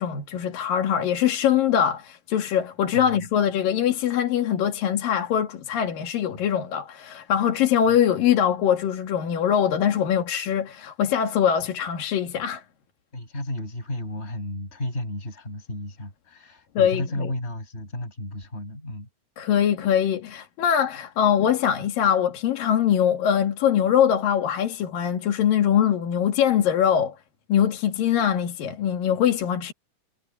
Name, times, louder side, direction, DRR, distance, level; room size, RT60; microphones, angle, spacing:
voice 1, 0.0-12.6 16.8-17.3 19.4-27.2 27.5-29.7, left 9 dB, 70° left, 3.6 m, -22 dB
voice 2, 2.9-3.3 6.3-6.5 7.9-8.0 13.1-19.1, left 1 dB, 15° left, 7.5 m, -33 dB
omnidirectional pair, 4.3 m